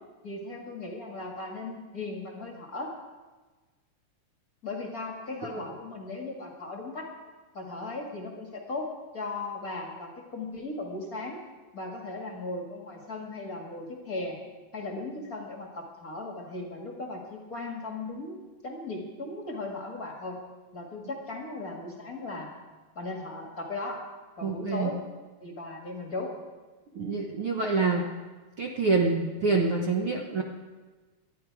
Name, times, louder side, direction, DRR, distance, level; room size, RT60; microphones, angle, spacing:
voice 1, 0.2-2.9 4.6-7.1 7.5-8.9 9.1-11.4 11.7-14.4 14.7-18.4 18.6-20.4 20.7-22.5 23.0-24.0 24.4-25.0 25.4-26.3 27.9-28.0, left 2 dB, 35° left, 0 dB, 2.0 m, -37 dB
voice 2, 24.4-24.9 26.9-28.1 28.6-30.4, right 4 dB, 60° right, 1 dB, 1.6 m, -26 dB
20.0 x 12.5 x 4.8 m, 1.3 s
omnidirectional pair, 3.6 m